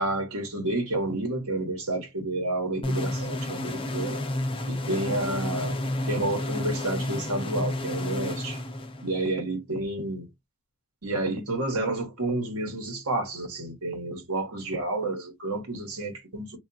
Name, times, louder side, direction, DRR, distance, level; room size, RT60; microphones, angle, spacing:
voice 1, 0.0-4.2 4.7-5.8 6.1-8.6 9.0-10.3 11.0-16.6, right 2 dB, 75° right, 1.2 m, -30 dB
sound 1, 2.8-9.3, left 1 dB, 25° left, 0.6 m, -31 dB
3.4 x 2.4 x 2.6 m
head